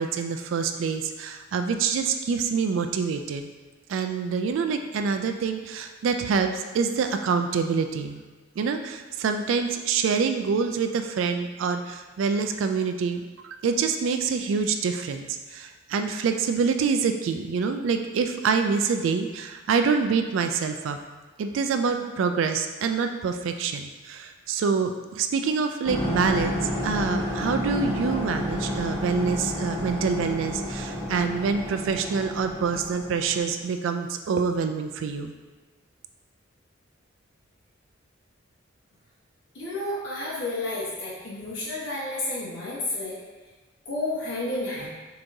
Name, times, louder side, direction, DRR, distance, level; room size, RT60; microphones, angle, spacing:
voice 1, 0.0-3.5 3.9-8.2 8.6-21.0 21.4-35.3, right 5 dB, 70° right, 7 dB, 0.3 m, -26 dB
sound 1, 25.8-33.5, equal, 30° left, 1.4 m, -30 dB
voice 2, 39.5-43.1 43.9-44.9, left 2 dB, 65° left, -8 dB, 1.1 m, -31 dB
6.9 x 2.9 x 2.6 m, 1.2 s
head